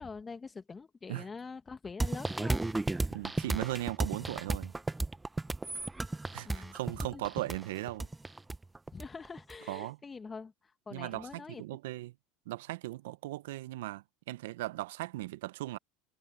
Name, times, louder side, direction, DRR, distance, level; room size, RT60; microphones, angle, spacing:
voice 1, 0.0-2.7 6.4-6.7 7.0-7.3 8.9-10.5 10.9-11.6, left 4 dB, 20° left, 2.0 m, -44 dB
sound 1, 2.0-9.5, right 2 dB, 10° right, 0.9 m, -34 dB
voice 2, 3.1-4.7 6.3-8.1 9.7-10.0 10.9-12.1 12.5-15.8, right 17 dB, 75° right, 1.1 m, -38 dB
hypercardioid pair, 85°, 0 cm